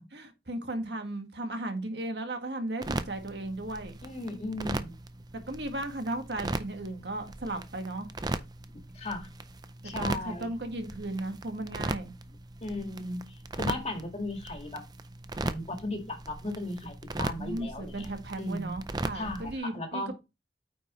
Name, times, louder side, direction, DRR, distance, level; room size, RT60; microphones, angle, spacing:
voice 1, 0.0-4.0 5.3-8.1 9.9-12.1 17.4-20.2, right 1 dB, 75° right, 1.5 m, -36 dB
sound 1, 2.8-19.6, right 2 dB, 25° right, 0.5 m, -38 dB
voice 2, 4.0-4.9 8.9-9.3 9.8-10.5 12.6-14.8 15.4-18.1 18.4-18.8 19.1-20.1, left 2 dB, 35° left, 1.8 m, -36 dB
8.9 x 5.0 x 3.1 m
head